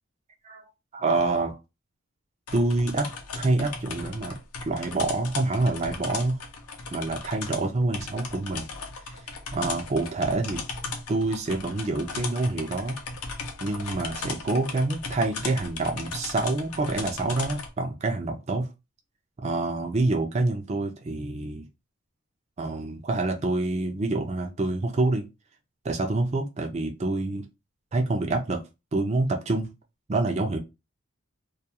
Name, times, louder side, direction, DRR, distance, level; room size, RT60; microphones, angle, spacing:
voice 1, 0.9-1.6 2.5-3.1 3.4-4.4 4.7-6.4 6.9-8.7 9.5-10.6 11.1-13.0 13.6-18.7 19.4-21.7 22.6-25.3 25.8-27.4 27.9-28.6 28.9-29.7 30.1-30.6, right 2 dB, 30° right, 4 dB, 0.4 m, -27 dB
sound 1, 2.5-17.7, left 4 dB, 85° left, 0.6 m, -37 dB
2.3 x 2.3 x 2.8 m, 0.25 s
head